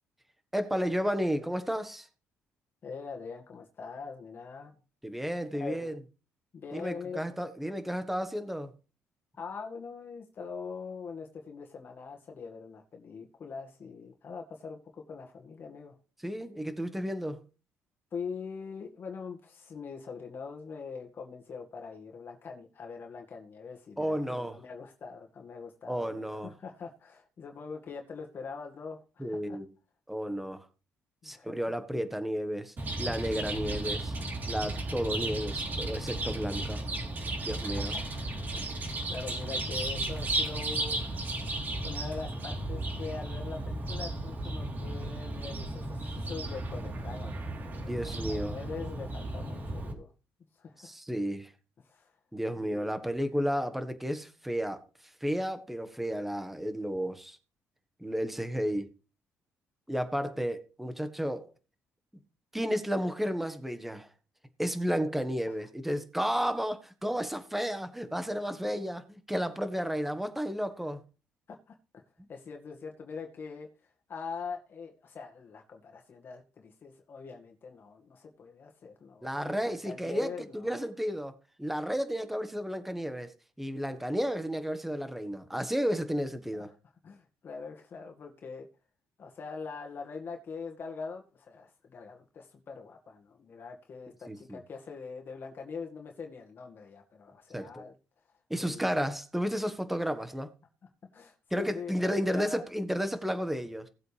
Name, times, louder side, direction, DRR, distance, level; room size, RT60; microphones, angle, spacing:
voice 1, 0.5-2.1 5.0-6.0 6.7-8.7 16.2-17.4 24.0-24.5 25.9-26.5 29.2-29.7 30.1-30.7 31.2-34.1 34.5-36.8 37.4-37.9 47.9-48.6 50.8-51.5 52.3-54.8 55.2-57.4 58.0-58.9 59.9-61.5 62.5-64.1 64.6-71.0 79.2-81.3 81.6-83.3 83.6-86.7 94.3-94.6 97.5-97.8 98.5-100.5 101.5-103.9, equal, 5° right, 1.5 m, -32 dB
voice 2, 2.8-4.8 5.5-5.9 6.5-7.4 9.3-16.0 18.1-29.6 31.2-31.5 37.6-38.3 38.5-41.0 41.8-50.1 50.6-50.9 51.8-52.1 52.6-53.0 65.5-65.6 71.5-71.8 72.3-73.7 74.1-80.8 86.5-86.7 87.0-88.7 89.2-97.9 98.5-98.9 101.1-102.6, left 5 dB, 45° left, 2.0 m, -43 dB
Chirp tweet, 32.8-49.9, right 2 dB, 40° right, 3.8 m, -34 dB
18.0 x 7.9 x 3.5 m
cardioid pair, 115°, 5 cm